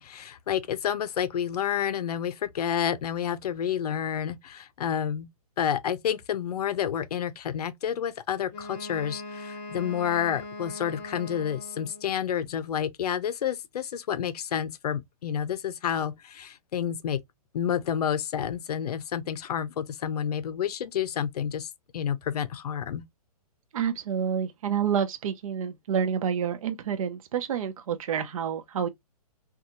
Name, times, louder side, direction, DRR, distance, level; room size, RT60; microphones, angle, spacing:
voice 1, 0.0-5.3 5.6-17.2 17.5-23.0, left 9 dB, 75° left, 0.5 m, -29 dB
Wind instrument woodwind instrument, 8.5-12.2, left 2 dB, 25° left, 1.0 m, -41 dB
voice 2, 23.7-28.9, right 8 dB, 60° right, 0.4 m, -28 dB
2.8 x 2.3 x 2.6 m
hypercardioid pair, 170°, 20 cm